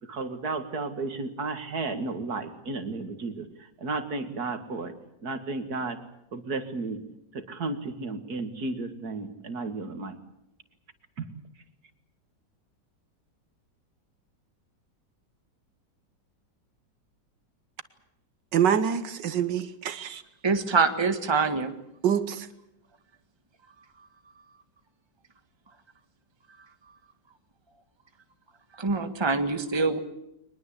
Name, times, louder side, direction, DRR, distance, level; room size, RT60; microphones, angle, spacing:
voice 1, 0.0-6.0 6.3-7.0 7.3-10.2 11.2-11.3, right 3 dB, 60° right, 2.5 m, -33 dB
voice 2, 18.5-20.2 22.0-22.5, right 8 dB, 85° right, 1.8 m, -25 dB
voice 3, 20.4-21.7 28.8-30.0, right 4 dB, 15° right, 1.5 m, -24 dB
23.0 x 20.5 x 8.3 m
omnidirectional pair, 1.9 m